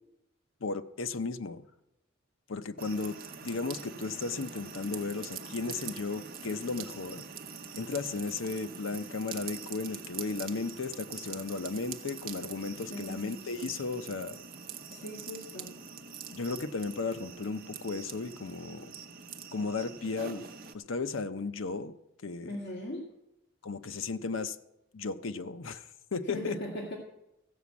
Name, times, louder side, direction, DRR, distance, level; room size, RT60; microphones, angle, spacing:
voice 1, 0.6-1.7 2.5-3.2 3.4-7.2 7.7-14.4 16.3-18.9 19.5-20.5 20.7-22.0 22.2-22.5 23.6-24.6 24.9-26.6, left 4 dB, 75° left, 0.7 m, -35 dB
sound 1, 2.8-20.7, right 6 dB, 45° right, 0.8 m, -44 dB
voice 2, 12.9-13.4 14.9-15.7 22.5-23.0 26.3-27.0, left 1 dB, 55° left, 2.0 m, -39 dB
14.5 x 6.0 x 8.3 m
head